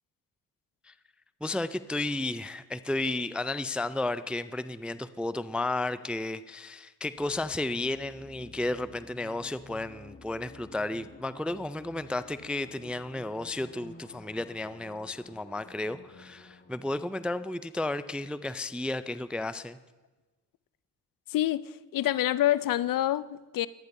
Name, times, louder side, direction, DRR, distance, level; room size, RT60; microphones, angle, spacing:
voice 1, 1.4-19.8, left 2 dB, 5° right, 14 dB, 0.3 m, -33 dB
sound 1, 7.2-18.7, left 3 dB, 25° left, 1.2 m, -52 dB
voice 2, 21.3-21.6 21.9-23.7, left 13 dB, 55° left, 18 dB, 0.5 m, -26 dB
22.5 x 9.6 x 2.6 m, 1.2 s
supercardioid pair, 65°, 41 cm